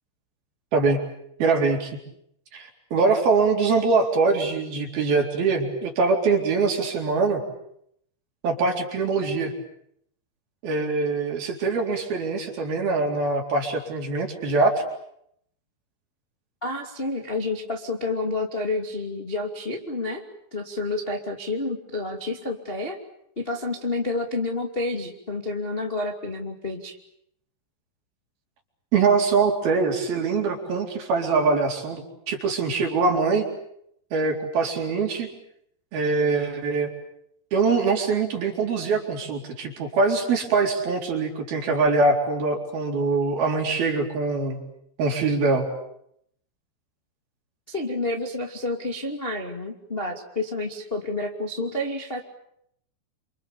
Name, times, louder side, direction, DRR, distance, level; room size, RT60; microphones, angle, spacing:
voice 1, 1.4-2.0 2.5-7.4 8.4-9.5 10.6-14.7 28.9-33.5 34.1-35.3 35.9-36.9 37.5-44.6 45.0-45.7, right 4 dB, 55° right, 2 dB, 5.6 m, -23 dB
voice 2, 16.6-20.2 20.5-23.0 23.3-27.0 47.7-52.2, left 2 dB, 20° left, 2 dB, 1.6 m, -29 dB
29.0 x 27.0 x 7.1 m, 0.73 s
omnidirectional pair, 5.5 m